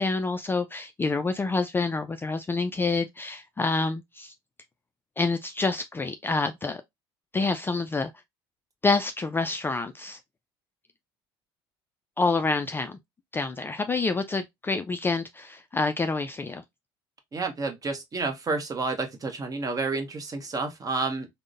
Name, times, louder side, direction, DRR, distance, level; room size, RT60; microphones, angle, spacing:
voice 1, 0.0-4.3 5.2-6.8 7.3-8.1 8.8-10.2 12.2-13.0 13.3-16.6, left 3 dB, 15° left, 0.3 m, -27 dB
voice 2, 17.3-21.3, right 3 dB, 30° right, 0.9 m, -30 dB
3.6 x 2.1 x 2.4 m
hypercardioid pair, 75°, 12 cm